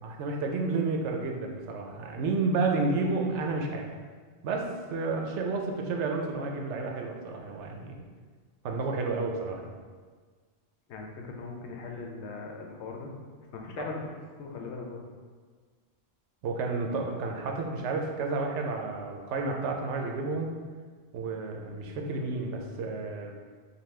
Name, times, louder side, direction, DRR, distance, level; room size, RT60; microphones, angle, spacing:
voice 1, 0.0-3.9 4.4-8.0 8.6-9.8 13.8-13.9 16.4-20.5 21.1-23.3, right 3 dB, 85° right, 2 dB, 0.9 m, -31 dB
voice 2, 10.9-13.1 13.5-15.0, left 3 dB, 80° left, 1 dB, 0.9 m, -39 dB
5.3 x 2.3 x 3.2 m, 1.5 s
omnidirectional pair, 1.2 m